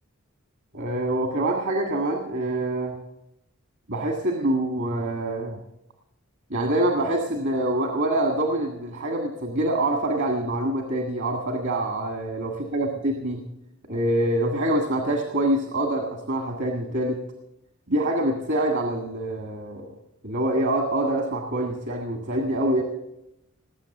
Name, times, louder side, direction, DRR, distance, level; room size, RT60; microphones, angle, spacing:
voice 1, 0.7-3.0 3.9-5.6 6.5-13.4 13.9-17.2 17.9-19.9 20.2-22.8, right 1 dB, 55° right, 3 dB, 1.7 m, -25 dB
19.5 x 8.5 x 7.2 m, 0.87 s
head